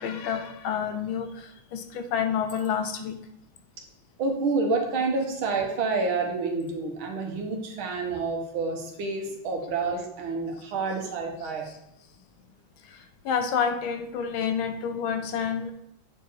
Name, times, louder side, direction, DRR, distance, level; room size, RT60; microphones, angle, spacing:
voice 1, 0.0-3.2 12.8-15.7, left 7 dB, 80° left, 7 dB, 1.5 m, -29 dB
voice 2, 4.2-11.7, right 3 dB, 75° right, 2 dB, 2.0 m, -28 dB
9.0 x 4.7 x 3.1 m, 0.82 s
omnidirectional pair, 2.3 m